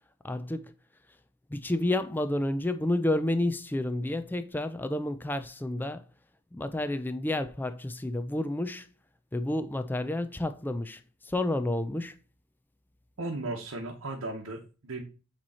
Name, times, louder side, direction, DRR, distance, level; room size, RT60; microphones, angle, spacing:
voice 1, 0.2-0.6 1.5-6.0 6.5-8.9 9.3-11.0 11.3-12.1, left 1 dB, 10° left, 0.3 m, -30 dB
voice 2, 13.2-15.0, right 2 dB, 85° right, 1.0 m, -36 dB
8.7 x 3.0 x 4.2 m
head